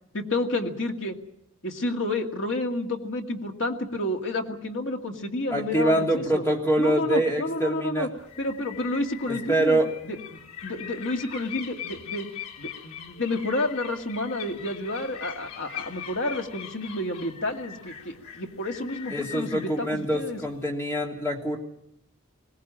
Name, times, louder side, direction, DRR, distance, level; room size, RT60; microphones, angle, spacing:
voice 1, 0.1-1.2 1.6-6.4 6.8-8.1 8.4-9.8 10.0-12.3 12.6-20.4, left 2 dB, 60° left, 3 dB, 2.2 m, -30 dB
voice 2, 5.5-8.1 9.3-9.9 19.1-21.6, right 1 dB, 10° left, 0 dB, 3.1 m, -25 dB
sound 1, 8.2-20.6, left 9 dB, 85° left, 3.2 m, -42 dB
21.5 x 18.5 x 8.8 m, 0.77 s
head